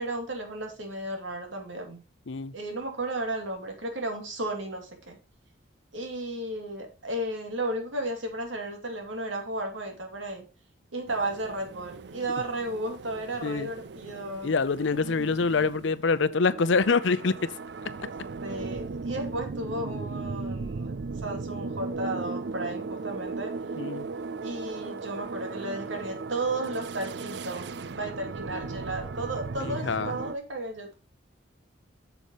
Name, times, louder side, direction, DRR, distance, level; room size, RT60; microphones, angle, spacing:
voice 1, 0.0-2.0 2.5-5.2 5.9-10.4 10.9-14.5 18.4-23.5 24.4-30.9, right 2 dB, 80° right, 2.6 m, -34 dB
sound 1, 11.1-30.4, right 4 dB, 60° right, 0.4 m, -37 dB
voice 2, 14.4-17.4 23.8-24.1 29.6-30.1, left 4 dB, 75° left, 0.6 m, -25 dB
8.6 x 7.0 x 3.0 m
head